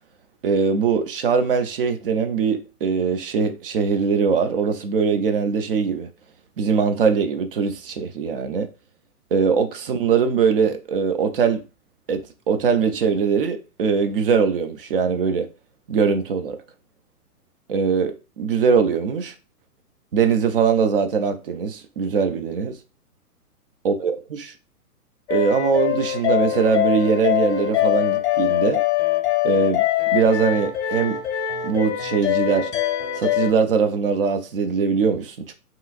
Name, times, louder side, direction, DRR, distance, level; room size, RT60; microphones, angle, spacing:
voice 1, 0.4-6.1 6.6-8.7 9.3-11.6 12.1-15.5 15.9-16.6 17.7-19.3 20.1-22.8 23.8-24.5 25.3-28.8 29.4-29.8 30.1-31.2 31.6-32.7 33.2-35.5, right 6 dB, 35° right, 0.5 m, -21 dB
sound 1, 25.3-33.5, left 13 dB, 45° left, 0.8 m, -23 dB
5.5 x 3.1 x 2.4 m
hypercardioid pair, 130°, 47 cm